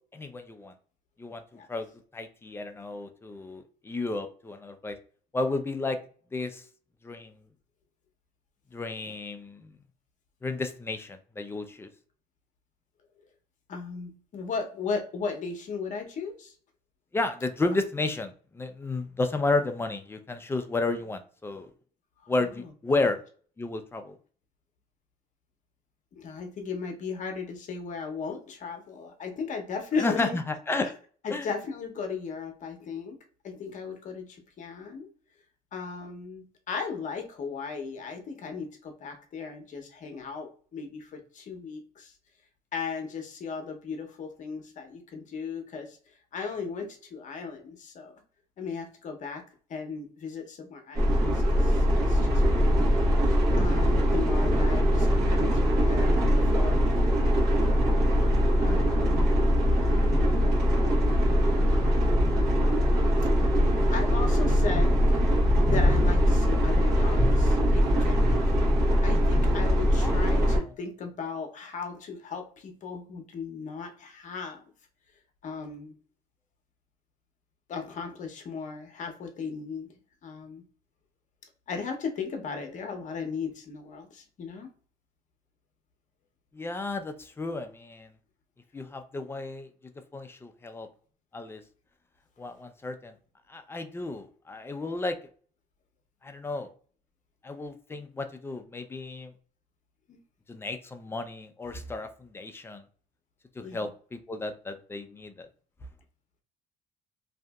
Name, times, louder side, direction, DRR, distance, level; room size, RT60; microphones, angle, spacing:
voice 1, 0.1-0.7 1.2-1.9 2.1-5.0 5.3-6.0 6.3-6.6 7.0-7.4 8.7-9.7 10.4-11.9 17.1-21.7 22.3-23.2 23.6-24.2 30.0-30.9 31.3-31.5 70.0-70.5 86.5-88.1 88.7-89.7 90.1-90.9 91.3-91.6 92.4-93.1 93.5-95.2 96.2-96.7 97.4-99.3 100.5-102.8 103.6-105.5, left 3 dB, 15° left, 7 dB, 0.4 m, -32 dB
voice 2, 13.7-16.5 22.2-22.7 26.1-30.4 31.2-33.2 33.4-35.1 35.7-42.1 42.7-46.0 46.3-48.2 48.6-49.4 49.7-58.0 58.6-59.3 59.7-60.6 61.8-62.3 63.9-64.9 65.7-68.2 69.0-74.6 75.4-75.9 77.7-79.9 80.2-80.6 81.7-84.7 100.1-100.2 103.6-103.9, left 5 dB, 50° left, 4 dB, 0.7 m, -37 dB
sound 1, 50.9-70.6, equal, 65° right, 1.1 m, -22 dB
2.7 x 2.5 x 2.2 m, 0.44 s
cardioid pair, 110°, 17 cm